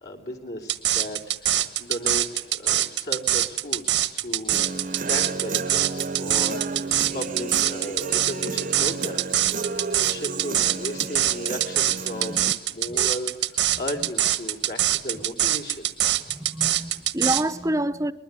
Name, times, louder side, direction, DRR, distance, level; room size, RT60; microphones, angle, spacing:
voice 1, 0.0-4.6 5.1-6.9 7.1-9.4 9.7-15.9, equal, 65° left, 3.6 m, -35 dB
sound 1, 0.7-17.4, right 12 dB, 90° right, 1.5 m, -23 dB
Human voice / Guitar, 4.5-12.5, right 3 dB, 50° right, 0.9 m, -32 dB
voice 2, 16.2-18.1, right 1 dB, 20° right, 0.8 m, -28 dB
23.0 x 21.0 x 9.8 m
head